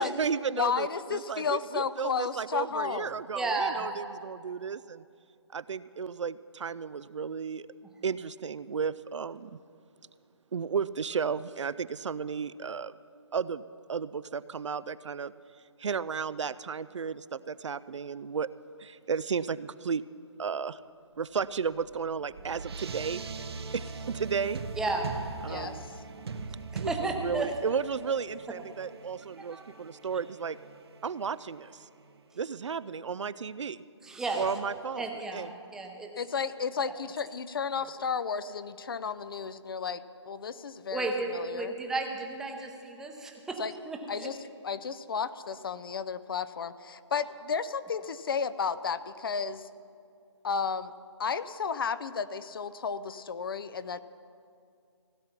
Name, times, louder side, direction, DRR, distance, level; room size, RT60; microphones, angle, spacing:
voice 1, 0.0-5.0 5.5-7.7 8.0-9.6 10.5-12.9 13.3-13.6 13.9-15.3 15.8-18.5 18.8-20.0 20.4-20.8 21.2-23.2 23.7-24.6 25.4-25.8 26.8-30.6 31.0-31.8 32.4-33.8 34.3-35.1 35.3-35.5, right 6 dB, 80° right, 17 dB, 0.4 m, -33 dB
voice 2, 0.5-3.2 25.5-25.8 36.2-41.7 43.6-43.7 44.1-44.4 44.6-49.7 50.4-50.9 51.2-54.0, left 6 dB, 50° left, 14 dB, 0.5 m, -33 dB
voice 3, 3.3-3.8 24.8-25.1 25.5-25.8 26.7-27.5 29.4-29.6 34.0-34.5 35.0-36.1 40.9-43.6 43.8-44.3, right 3 dB, 5° right, 2 dB, 0.7 m, -33 dB
sound 1, 21.4-32.2, right 4 dB, 60° right, 0.9 m, -41 dB
16.5 x 8.6 x 5.8 m, 2.4 s
figure-of-eight pair, 155°, 15 cm